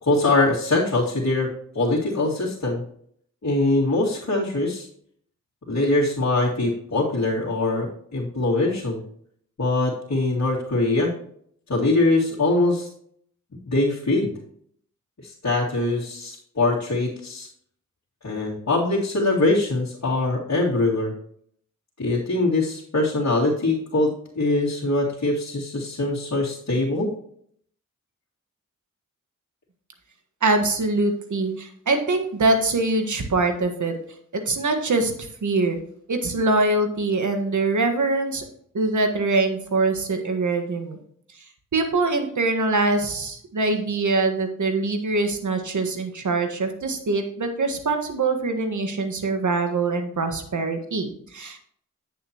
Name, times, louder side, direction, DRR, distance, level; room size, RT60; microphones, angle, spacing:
voice 1, 0.0-2.8 3.4-4.9 5.7-9.0 9.6-11.1 11.7-12.9 13.7-14.3 15.2-17.5 18.2-21.1 22.0-27.1, left 2 dB, 55° left, -7 dB, 2.4 m, -23 dB
voice 2, 30.4-33.9 34.3-35.8 36.1-38.4 38.7-41.0 41.7-51.6, right 3 dB, 65° right, 6 dB, 1.6 m, -23 dB
8.6 x 7.4 x 3.0 m, 0.65 s
cardioid pair, 50°, 32 cm